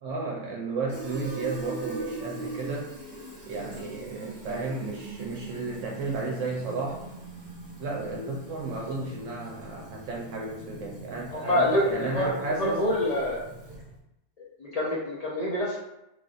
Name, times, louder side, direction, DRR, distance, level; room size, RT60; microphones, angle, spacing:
voice 1, 0.0-2.9 3.5-7.0 7.8-12.9, right 3 dB, 80° right, -2 dB, 0.9 m, -33 dB
Fill (with liquid), 0.9-14.0, right 2 dB, 45° right, 1.0 m, -41 dB
voice 2, 11.3-12.3 12.6-13.4 14.4-15.8, left 1 dB, 50° left, -5 dB, 0.5 m, -26 dB
3.1 x 2.6 x 2.4 m, 0.90 s
omnidirectional pair, 1.3 m